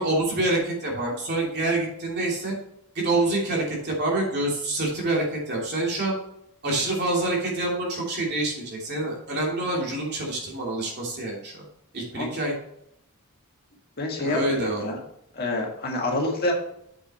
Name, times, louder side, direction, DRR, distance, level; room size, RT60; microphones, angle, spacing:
voice 1, 0.0-2.6 2.9-6.1 6.6-11.6 11.9-12.5 14.2-14.9, right 2 dB, 50° right, -3 dB, 2.9 m, -26 dB
voice 2, 14.0-15.0 15.3-16.5, left 2 dB, 45° left, -1 dB, 1.9 m, -27 dB
7.8 x 6.2 x 4.3 m, 0.74 s
head